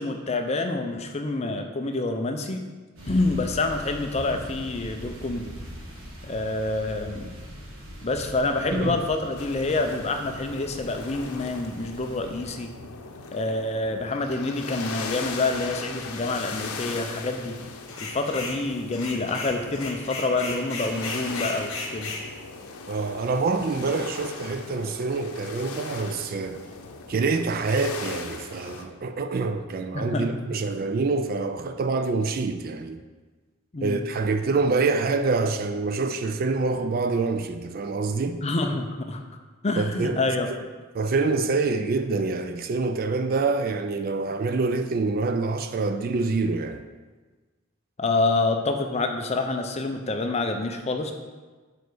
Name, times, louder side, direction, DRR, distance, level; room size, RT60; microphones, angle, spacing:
voice 1, 0.0-2.6 3.1-5.5 6.2-7.3 8.0-12.7 13.3-17.6 18.0-22.1 29.9-30.4 33.7-34.0 38.4-39.2 39.6-40.5 48.0-51.1, left 2 dB, 30° left, 0.5 m, -27 dB
sound 1, 3.0-12.5, equal, 60° right, 1.7 m, -41 dB
sound 2, 9.4-28.8, left 4 dB, 85° left, 0.7 m, -39 dB
sound 3, 17.9-18.6 18.9-22.2, left 3 dB, 65° left, 1.2 m, -34 dB
voice 2, 22.9-26.6 27.1-33.0 33.8-38.4 39.8-40.2 40.9-46.8, right 3 dB, 40° right, 0.3 m, -26 dB
5.2 x 4.6 x 6.1 m
head